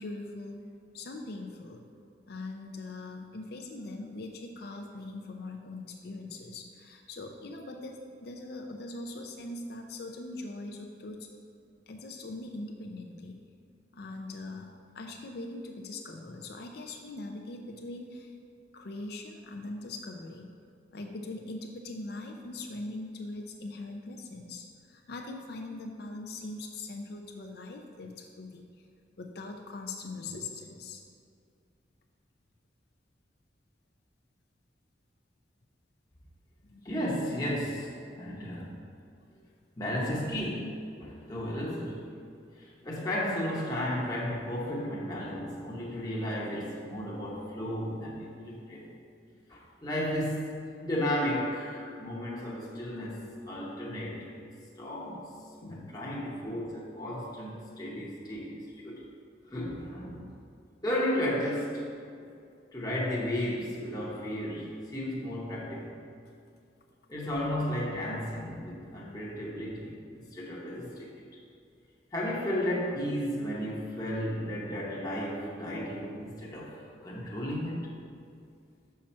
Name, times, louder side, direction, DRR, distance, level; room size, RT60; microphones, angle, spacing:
voice 1, 0.0-1.8 2.3-11.3 11.9-13.4 13.9-18.3 18.7-20.5 20.9-28.6 29.2-31.0 36.6-36.8 39.3-39.4 55.6-56.0, left 2 dB, 60° left, 3 dB, 0.5 m, -41 dB
voice 2, 36.8-38.8 39.8-42.0 42.6-48.9 49.5-50.5 50.8-54.4 54.8-55.3 55.7-59.0 59.5-60.2 60.8-61.8 62.7-66.0 67.1-71.1 72.1-77.9, equal, 20° left, -5 dB, 0.9 m, -34 dB
6.2 x 5.7 x 4.3 m, 2.4 s
head